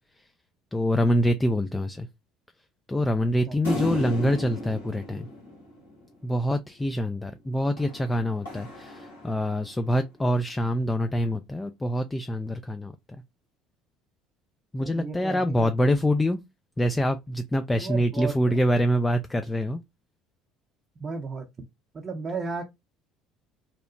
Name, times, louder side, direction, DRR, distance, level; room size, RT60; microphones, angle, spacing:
voice 1, 0.7-2.1 2.9-5.3 6.2-13.2 14.7-16.4 16.8-19.8, equal, 15° left, 0.3 m, -25 dB
sound 1, 3.6-6.3 7.8-9.8, left 1 dB, 85° left, 1.1 m, -36 dB
voice 2, 14.8-15.7 17.7-18.6 21.0-21.5 21.9-22.6, right 4 dB, 35° right, 0.6 m, -34 dB
2.9 x 2.0 x 2.5 m
hypercardioid pair, 65°, 0 cm